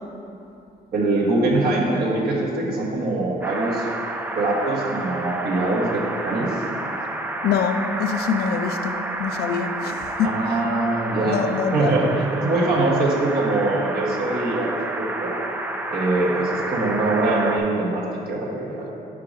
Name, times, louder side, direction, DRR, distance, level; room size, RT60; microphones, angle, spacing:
voice 1, 0.9-3.9 4.3-6.6 10.2-11.4 11.7-15.4 15.9-18.9, right 2 dB, 75° right, -4 dB, 1.1 m, -23 dB
sound 1, 3.4-17.6, right 2 dB, 10° right, 0.4 m, -30 dB
voice 2, 7.4-10.3 11.3-11.9, left 7 dB, 80° left, 7 dB, 0.4 m, -25 dB
4.9 x 4.7 x 5.1 m, 2.9 s
cardioid pair, 110°, 16 cm